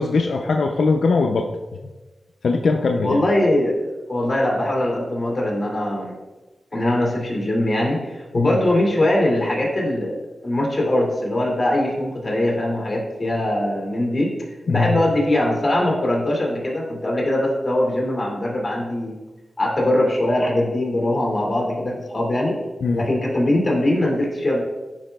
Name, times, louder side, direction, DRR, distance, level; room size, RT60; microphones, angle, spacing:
voice 1, 0.0-1.5 2.4-3.2 8.3-8.6 14.7-15.0 22.8-23.0, left 4 dB, 80° left, 3 dB, 0.4 m, -20 dB
voice 2, 3.0-3.8 4.1-6.1 6.7-14.3 14.7-19.1 19.6-22.6 22.9-24.6, left 1 dB, 30° left, -2 dB, 2.1 m, -21 dB
10.5 x 4.7 x 2.2 m, 1.2 s
wide cardioid pair, 80°, 0 cm